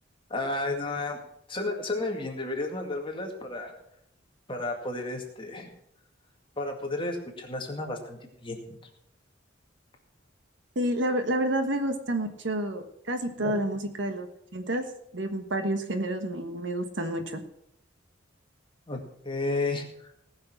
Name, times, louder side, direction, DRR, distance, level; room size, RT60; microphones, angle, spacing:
voice 1, 0.3-1.2 1.5-3.7 4.5-5.7 6.6-8.8 13.4-13.6 18.9-20.1, left 2 dB, 25° left, 2 dB, 2.1 m, -32 dB
voice 2, 10.7-14.8 15.1-17.4, right 1 dB, 65° right, 7 dB, 1.4 m, -29 dB
18.5 x 6.5 x 6.0 m, 0.74 s
head